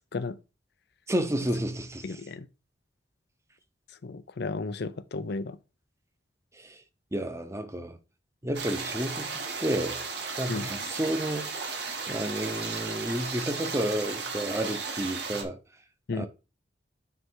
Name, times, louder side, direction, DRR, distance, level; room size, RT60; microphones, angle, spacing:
voice 1, 1.1-2.2 6.5-6.8 7.1-8.0 8.4-10.1 10.4-11.5 12.1-15.6 16.1-16.3, right 1 dB, 15° right, 0.9 m, -31 dB
voice 2, 2.0-2.5 4.0-5.6 10.5-10.7 16.1-16.3, left 3 dB, 65° left, 0.6 m, -33 dB
sound 1, 8.5-15.4, right 4 dB, 65° right, 1.6 m, -35 dB
9.5 x 3.3 x 4.7 m
head